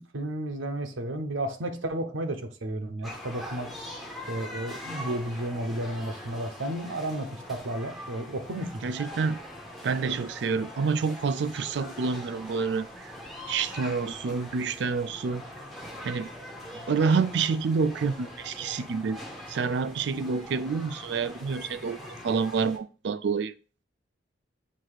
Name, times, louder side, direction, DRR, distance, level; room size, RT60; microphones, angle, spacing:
voice 1, 0.0-3.7 4.3-8.8, right 1 dB, 80° right, 0.8 m, -32 dB
sound 1, 3.0-22.8, left 1 dB, ahead, 0.8 m, -42 dB
voice 2, 8.8-9.4 9.8-13.1 13.5-15.4 16.0-16.3 16.9-19.2 19.5-23.5, right 5 dB, 60° right, 0.3 m, -28 dB
7.5 x 2.7 x 4.8 m
head